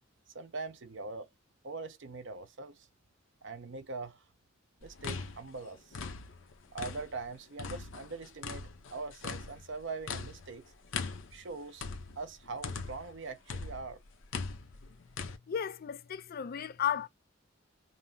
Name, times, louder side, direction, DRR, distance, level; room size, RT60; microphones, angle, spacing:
voice 1, 0.3-1.3 1.6-2.9 3.4-4.2 4.8-6.0 6.7-8.6 8.9-10.6 11.3-11.9 12.2-14.0, right 3 dB, 65° right, 0.8 m, -42 dB
sound 1, 4.8-7.3 7.6-13.2 13.5-15.4, left 4 dB, 75° left, 0.7 m, -40 dB
voice 2, 15.5-17.1, left 9 dB, 50° left, 0.4 m, -34 dB
5.5 x 2.0 x 2.7 m
head